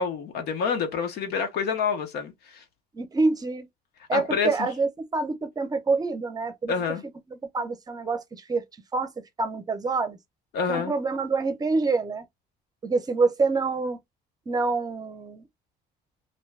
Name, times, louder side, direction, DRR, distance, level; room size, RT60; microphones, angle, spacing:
voice 1, 0.0-2.6 4.1-4.7 6.7-7.0 10.5-10.9, left 6 dB, 75° left, 0.8 m, -27 dB
voice 2, 2.9-3.7 4.1-6.7 7.3-8.2 8.5-8.6 8.9-9.1 9.4-10.2 10.7-12.2 12.8-14.0 14.5-15.5, right 3 dB, 25° right, 0.7 m, -26 dB
2.7 x 2.2 x 3.2 m
cardioid pair, 110°, 17 cm